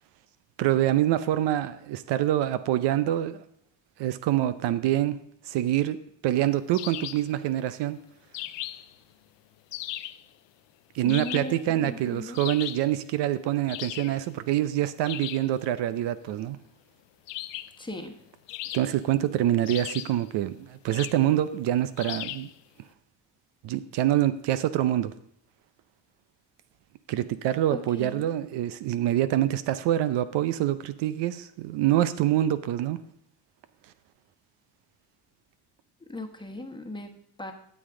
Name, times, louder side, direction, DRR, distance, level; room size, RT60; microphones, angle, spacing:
voice 1, 0.6-3.4 4.0-5.2 5.5-6.0 6.2-8.0 10.9-16.6 18.7-22.5 23.6-25.1 27.1-33.0, right 13 dB, 75° right, 0.7 m, -25 dB
sound 1, 6.7-7.3 8.3-8.9 9.7-10.2 11.1-11.6 12.3-12.9 13.7-14.2 15.0-15.5 17.3-17.8 18.5-19.2 19.7-20.2 20.9-21.3 22.0-22.5, left 16 dB, 80° left, 0.6 m, -37 dB
voice 2, 11.0-12.4 17.8-18.2 27.7-28.3 36.1-37.5, left 1 dB, 10° left, 1.2 m, -38 dB
12.5 x 7.3 x 3.8 m
cardioid pair, 100°, 42 cm